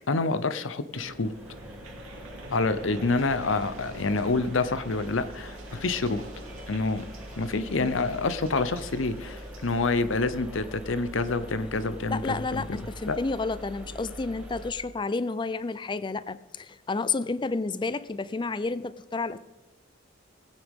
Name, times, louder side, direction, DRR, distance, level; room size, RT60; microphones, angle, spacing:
voice 1, 0.1-1.3 2.5-6.2 6.7-7.1 7.4-12.2 12.5-12.6 13.1-13.2, left 3 dB, 70° left, 12 dB, 0.8 m, -27 dB
sound 1, 0.9-10.0, right 2 dB, 85° right, 2.7 m, -47 dB
sound 2, 1.0-14.7, equal, 5° right, 1.4 m, -43 dB
voice 2, 12.1-19.4, left 3 dB, 25° left, 15 dB, 0.4 m, -31 dB
20.0 x 9.2 x 3.7 m, 1.2 s
head